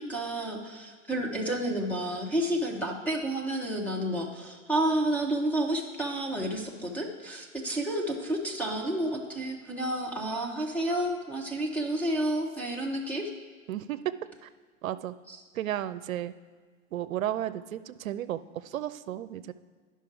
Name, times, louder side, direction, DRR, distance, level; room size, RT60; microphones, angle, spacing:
voice 1, 0.0-13.3 15.3-15.4, right 1 dB, 5° left, 0 dB, 0.7 m, -30 dB
voice 2, 13.7-14.1 14.4-14.5 14.8-15.1 15.5-16.3 16.9-19.5, right 12 dB, 85° right, 13 dB, 0.6 m, -33 dB
11.0 x 5.7 x 4.7 m, 1.6 s
hypercardioid pair, 140°, 40 cm